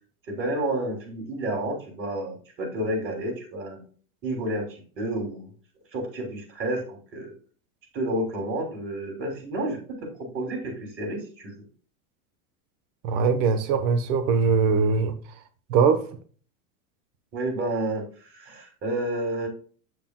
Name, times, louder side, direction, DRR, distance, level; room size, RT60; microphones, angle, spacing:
voice 1, 0.3-3.8 4.2-5.5 5.9-7.3 7.9-11.7 17.3-19.5, right 1 dB, 30° right, 3.1 m, -30 dB
voice 2, 13.0-15.1 15.7-16.0, right 5 dB, 60° right, 1.2 m, -21 dB
7.8 x 6.6 x 2.3 m
supercardioid pair, 145°, 43 cm